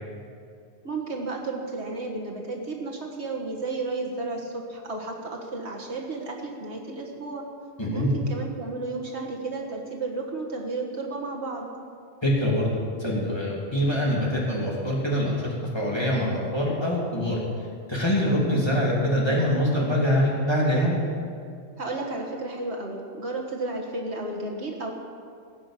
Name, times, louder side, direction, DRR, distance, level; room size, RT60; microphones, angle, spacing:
voice 1, 0.8-7.5 7.9-11.7 21.8-24.9, right 3 dB, 60° right, -1 dB, 1.8 m, -33 dB
voice 2, 7.8-8.1 12.2-17.4 17.9-21.0, equal, 20° left, -4 dB, 2.8 m, -24 dB
17.5 x 6.6 x 8.2 m, 2.3 s
omnidirectional pair, 1.3 m